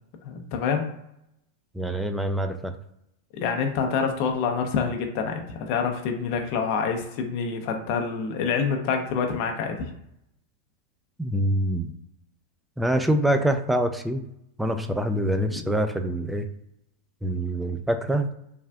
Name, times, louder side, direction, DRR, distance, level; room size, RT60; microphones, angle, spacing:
voice 1, 0.2-0.8 3.3-9.8, left 6 dB, 55° left, 4 dB, 0.6 m, -26 dB
voice 2, 1.7-2.8 11.2-11.9 12.8-14.3 14.6-16.5 17.2-18.3, right 1 dB, 5° right, 7 dB, 0.3 m, -25 dB
3.4 x 2.4 x 2.3 m, 0.79 s
hypercardioid pair, 105°, 0 cm